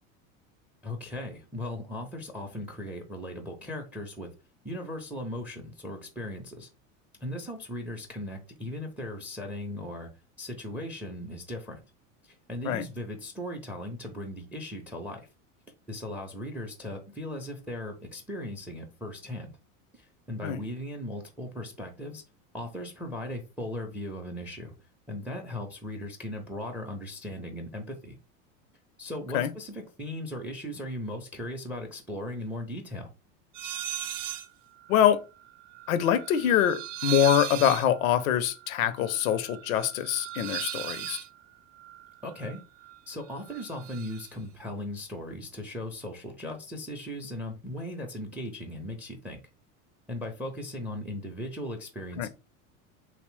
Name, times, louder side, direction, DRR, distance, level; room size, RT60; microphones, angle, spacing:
voice 1, 0.8-4.3 4.6-6.7 7.2-10.1 10.4-11.8 12.2-15.2 15.9-19.5 19.9-22.2 22.5-24.7 25.1-28.2 29.0-33.1 40.8-40.9 42.2-42.6 43.1-49.4 50.1-52.3, left 1 dB, 5° right, 0.4 m, -38 dB
sound 1, 33.5-34.5 34.8-43.0 43.3-44.3, right 12 dB, 65° right, 0.5 m, -38 dB
voice 2, 34.9-35.2 35.9-41.2 52.2-52.3, left 10 dB, 85° left, 0.5 m, -24 dB
2.9 x 2.0 x 3.1 m
hypercardioid pair, 90°, 40 cm